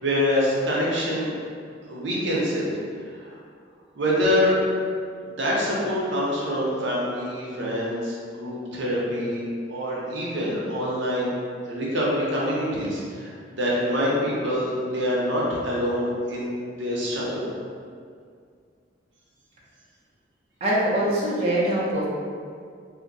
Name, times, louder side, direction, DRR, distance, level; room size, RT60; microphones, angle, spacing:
voice 1, 0.0-1.3 1.9-2.7 3.1-3.4 3.9-4.6 5.3-9.4 9.7-11.3 11.7-17.5, equal, 75° right, -5 dB, 0.7 m, -25 dB
voice 2, 20.6-22.1, right 1 dB, 35° right, -8 dB, 0.6 m, -23 dB
2.6 x 2.2 x 3.8 m, 2.2 s
head